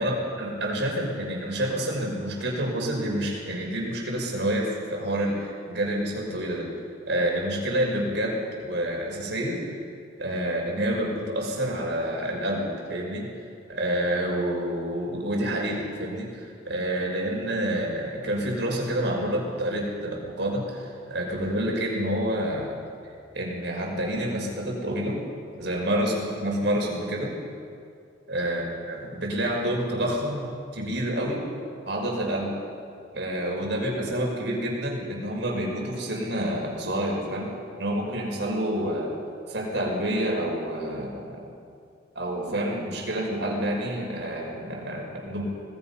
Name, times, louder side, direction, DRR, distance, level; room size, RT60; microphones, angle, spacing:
voice 1, 0.0-6.7 7.1-9.6 10.2-13.3 13.7-22.8 23.3-25.2 25.5-27.4 28.3-31.4 31.9-32.5 33.1-37.5 37.8-39.2 39.5-41.5 42.2-45.4, right 1 dB, 70° right, -1 dB, 5.6 m, -28 dB
25.5 x 19.0 x 5.7 m, 2.4 s
head